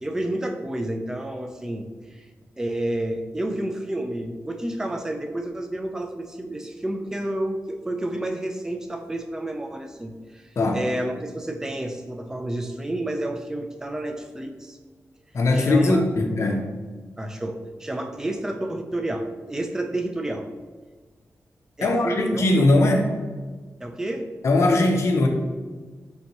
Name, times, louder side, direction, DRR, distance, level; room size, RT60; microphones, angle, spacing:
voice 1, 0.0-2.3 2.6-14.8 15.5-16.1 17.2-20.5 21.8-22.4 23.8-24.3, right 1 dB, 10° right, 4 dB, 0.3 m, -30 dB
voice 2, 15.3-16.7 21.8-23.1 24.4-25.3, left 2 dB, 60° left, 3 dB, 0.6 m, -20 dB
4.1 x 3.4 x 2.9 m, 1.4 s
wide cardioid pair, 130°, 5 cm